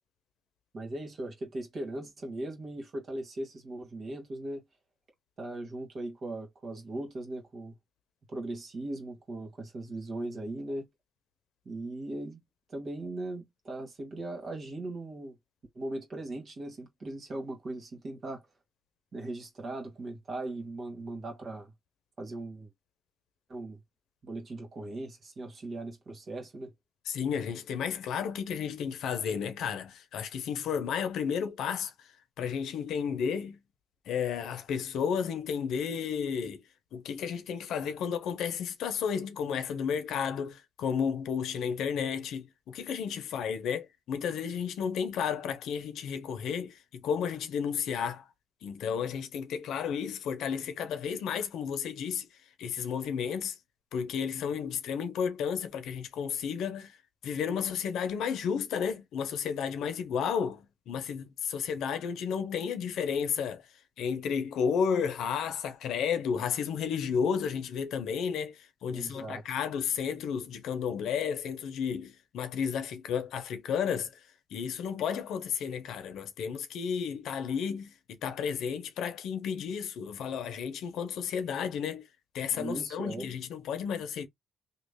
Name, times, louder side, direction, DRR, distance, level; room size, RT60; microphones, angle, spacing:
voice 1, 0.7-4.6 5.4-7.7 8.3-10.9 11.7-12.4 12.7-15.4 15.7-18.4 19.1-21.7 22.2-22.7 23.5-23.8 24.2-26.7 68.9-69.4 82.5-83.3, right 2 dB, 45° right, 1.7 m, -39 dB
voice 2, 27.1-31.9 32.4-33.6 34.1-36.6 36.9-48.3 48.6-52.3 52.6-53.5 53.9-57.0 57.2-63.6 64.0-74.2 74.5-82.1 82.3-84.3, left 7 dB, 80° left, 0.8 m, -32 dB
3.1 x 2.4 x 3.5 m
cardioid pair, 90°, 0 cm